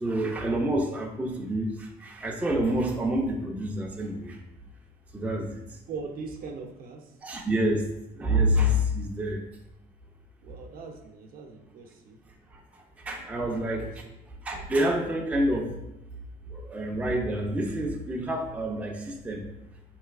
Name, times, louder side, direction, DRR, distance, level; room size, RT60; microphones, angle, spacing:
voice 1, 0.0-4.4 5.1-5.6 7.2-7.8 8.2-9.4 13.1-13.9 14.5-15.7 16.5-19.4, equal, 10° right, 1 dB, 0.4 m, -27 dB
voice 2, 5.9-7.1 10.4-12.2 13.4-14.0, right 4 dB, 60° right, 2 dB, 0.6 m, -41 dB
3.9 x 3.0 x 2.4 m, 0.88 s
cardioid pair, 110°, 17 cm